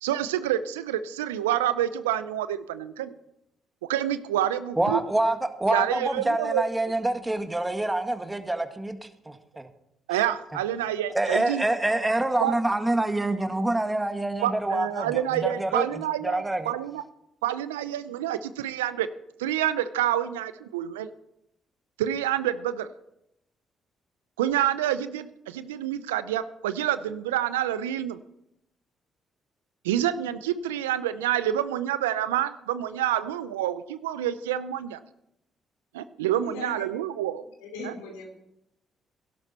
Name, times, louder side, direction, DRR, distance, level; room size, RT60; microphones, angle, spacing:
voice 1, 0.0-3.1 3.9-5.0 5.7-6.6 10.1-11.6 12.4-12.6 14.4-17.0 17.4-19.1 19.4-21.1 22.0-22.9 24.4-28.2 29.8-35.0 35.9-37.4 37.8-37.9, right 11 dB, 90° right, 14 dB, 0.5 m, -28 dB
voice 2, 4.8-9.0 9.2-9.7 11.1-16.7, right 2 dB, 15° right, 7 dB, 1.8 m, -26 dB
voice 3, 36.3-36.8 37.6-38.3, left 3 dB, 85° left, 3 dB, 2.8 m, -39 dB
16.5 x 11.5 x 4.2 m, 0.81 s
hypercardioid pair, 50°, 0 cm